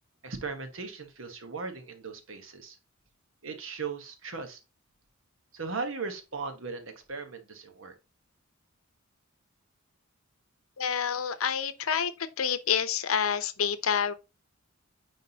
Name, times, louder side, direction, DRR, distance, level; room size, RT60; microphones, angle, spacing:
voice 1, 0.2-2.8 3.4-4.6 5.5-7.9, right 4 dB, 70° right, 1.1 m, -38 dB
voice 2, 10.8-12.1 12.4-14.1, left 7 dB, 85° left, 0.7 m, -28 dB
9.5 x 3.7 x 2.8 m
head